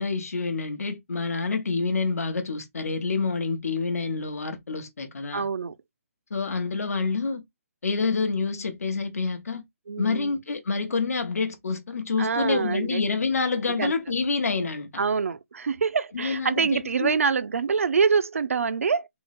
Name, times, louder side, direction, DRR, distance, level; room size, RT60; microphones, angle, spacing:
voice 1, 0.0-5.4 6.3-7.4 7.8-9.6 10.0-15.0 16.1-17.2, left 4 dB, 80° left, 0.9 m, -27 dB
voice 2, 5.3-5.8 9.9-10.3 12.2-13.0 13.8-13.9 15.0-19.1, right 5 dB, 65° right, 0.4 m, -25 dB
3.7 x 2.0 x 4.1 m
hypercardioid pair, 180°, 8 cm